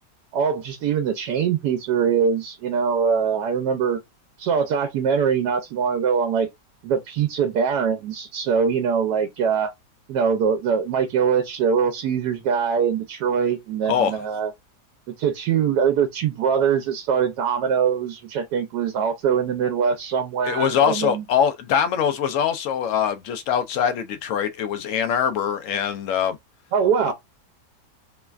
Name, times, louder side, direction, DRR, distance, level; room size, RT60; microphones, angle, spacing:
voice 1, 0.3-4.0 4.4-6.5 6.8-9.7 10.1-14.5 15.2-21.2 26.7-27.1, right 7 dB, 75° right, 1.2 m, -22 dB
voice 2, 13.9-14.2 20.4-26.4 27.0-27.1, left 8 dB, 75° left, 0.7 m, -23 dB
3.2 x 2.1 x 2.3 m
omnidirectional pair, 1.8 m